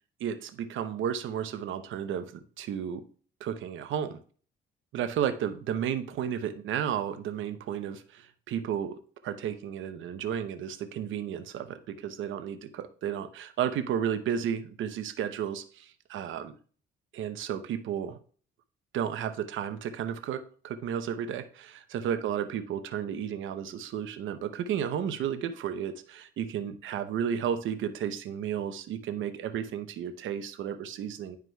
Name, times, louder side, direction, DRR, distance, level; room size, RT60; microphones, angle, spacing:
voice 1, 0.2-2.3 2.6-3.0 3.4-4.2 4.9-8.9 9.2-16.5 17.1-18.2 18.9-31.4, right 9 dB, 75° right, 9 dB, 0.8 m, -33 dB
11.0 x 4.7 x 2.3 m, 0.43 s
cardioid pair, 90°, 20 cm